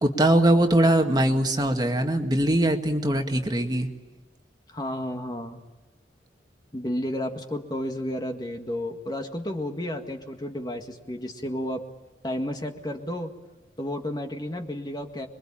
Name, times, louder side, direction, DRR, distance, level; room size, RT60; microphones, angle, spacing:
voice 1, 0.0-3.9, right 1 dB, 25° right, 4 dB, 1.9 m, -21 dB
voice 2, 4.7-5.6 6.7-11.9 12.2-13.3 13.8-15.3, left 1 dB, 25° left, 4 dB, 1.8 m, -32 dB
27.0 x 22.5 x 8.9 m, 1.2 s
head